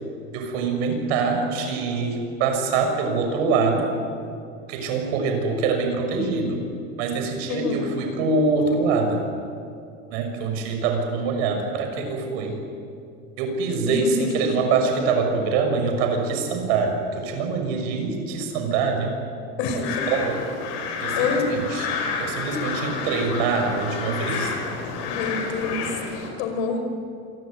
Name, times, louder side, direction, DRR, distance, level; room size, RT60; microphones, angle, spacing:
voice 1, 0.3-3.9 4.7-6.6 7.0-9.2 10.1-12.6 13.4-19.1 19.7-20.4 21.0-21.9 22.2-24.5, right 4 dB, 70° right, 4 dB, 6.4 m, -24 dB
voice 2, 7.5-7.8 13.9-14.3 19.6-20.1 21.2-21.6 25.0-25.9 26.4-26.9, left 4 dB, 75° left, 6 dB, 5.4 m, -27 dB
sound 1, 19.7-26.3, left 5 dB, 55° left, 6.7 m, -30 dB
26.5 x 21.5 x 9.3 m, 2.5 s
cardioid pair, 170°, 32 cm